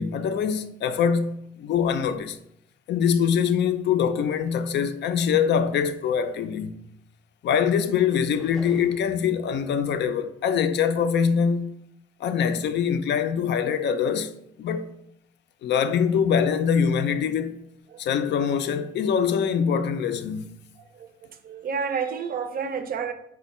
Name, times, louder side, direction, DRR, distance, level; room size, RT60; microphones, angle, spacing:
voice 1, 0.0-2.4 2.9-6.7 7.4-11.7 12.2-14.3 14.6-14.9 15.6-17.6 18.0-20.5, left 7 dB, 60° left, 0.4 m, -24 dB
sound 1, 8.3-9.2, left 1 dB, ahead, 0.6 m, -43 dB
voice 2, 20.8-23.1, right 6 dB, 45° right, 0.5 m, -30 dB
4.3 x 2.2 x 4.1 m
cardioid pair, 90°, 20 cm